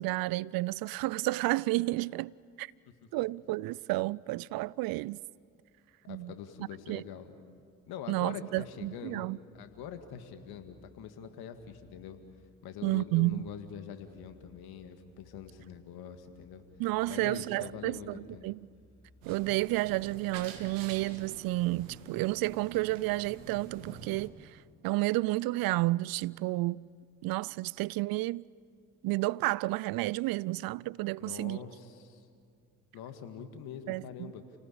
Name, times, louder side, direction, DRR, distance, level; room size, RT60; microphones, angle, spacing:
voice 1, 0.0-2.3 2.6-2.7 3.1-5.2 6.1-6.3 6.9-7.0 8.1-9.4 12.8-13.5 16.8-18.6 19.3-24.6 24.8-26.9 27.2-28.5 29.0-31.6 33.9-34.3, right 20 dB, 65° right, 0.5 m, -31 dB
voice 2, 6.0-7.3 7.9-9.3 9.5-12.2 12.6-16.6 17.1-18.5 31.2-32.3 32.9-34.4, left 8 dB, 70° left, 2.1 m, -44 dB
sound 1, 9.5-21.1, left 2 dB, 10° left, 7.9 m, -64 dB
sound 2, 19.2-24.3, right 6 dB, 90° right, 1.6 m, -47 dB
29.5 x 18.5 x 8.7 m
hypercardioid pair, 50°, 39 cm